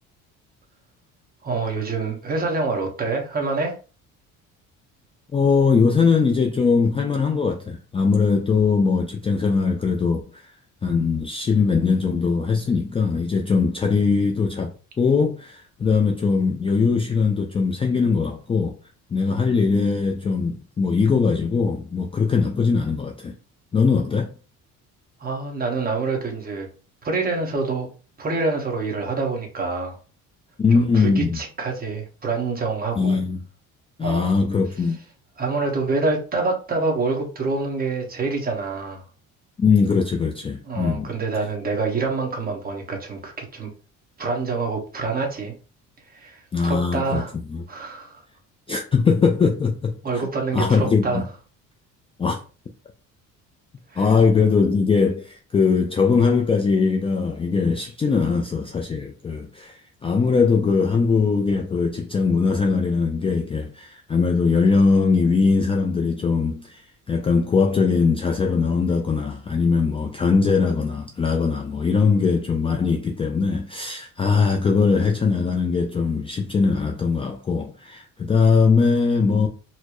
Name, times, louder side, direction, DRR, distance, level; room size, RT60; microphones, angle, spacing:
voice 1, 1.4-3.8 25.2-26.7 27.0-27.9 28.2-30.0 30.7-33.2 34.0-34.3 35.4-39.0 40.7-43.7 44.2-45.5 46.1-47.3 47.7-48.2 50.0-51.2 53.9-54.1 58.1-58.2, right 3 dB, 30° right, 1.1 m, -26 dB
voice 2, 5.3-10.5 10.8-18.7 19.1-23.4 23.7-24.3 30.6-31.4 33.0-33.4 34.0-35.0 39.6-41.1 46.5-47.2 47.5-47.6 48.7-49.9 50.5-51.2 52.2-52.4 54.0-66.8 67.1-79.5, left 5 dB, 20° left, 0.3 m, -21 dB
4.3 x 2.0 x 3.0 m
cardioid pair, 120°, 31 cm